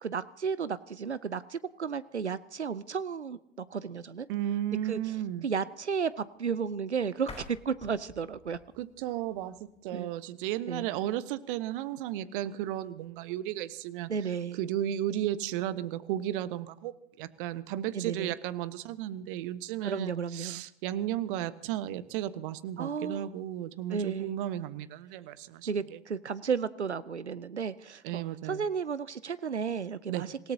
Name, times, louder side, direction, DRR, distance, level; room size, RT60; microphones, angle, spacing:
voice 1, 0.0-3.4 3.7-4.3 4.9-5.0 5.4-8.6 9.9-10.1 10.7-10.9 14.1-14.6 17.9-18.4 19.8-20.6 22.8-23.3 23.9-24.3 25.7-30.4, right 6 dB, 85° right, 16 dB, 0.7 m, -33 dB
voice 2, 4.3-5.5 8.8-9.5 9.8-14.1 14.5-26.0 28.0-28.6 30.1-30.2, right 12 dB, 50° right, 14 dB, 1.2 m, -34 dB
sound 1, 7.2-10.0, left 3 dB, 20° left, 3.8 m, -50 dB
27.0 x 17.5 x 2.8 m, 0.75 s
figure-of-eight pair, 85°, 33 cm